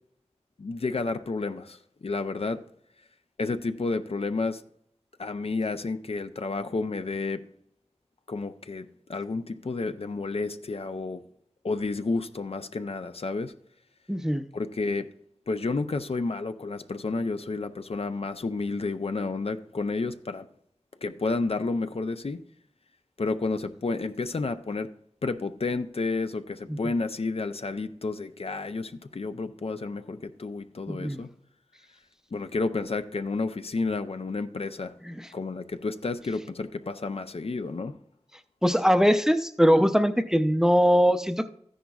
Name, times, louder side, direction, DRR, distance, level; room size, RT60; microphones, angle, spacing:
voice 1, 0.6-2.6 3.4-4.6 5.2-7.4 8.3-11.2 11.6-13.5 14.5-15.1 15.5-20.5 21.0-22.4 23.2-24.9 25.2-31.3 32.3-34.9 35.3-37.9, left 3 dB, 60° left, 0.5 m, -31 dB
voice 2, 14.1-14.5 26.7-26.8 30.9-31.2 35.1-35.3 38.6-41.5, equal, 5° right, 0.5 m, -22 dB
13.5 x 10.0 x 2.4 m
wide cardioid pair, 60°, 11 cm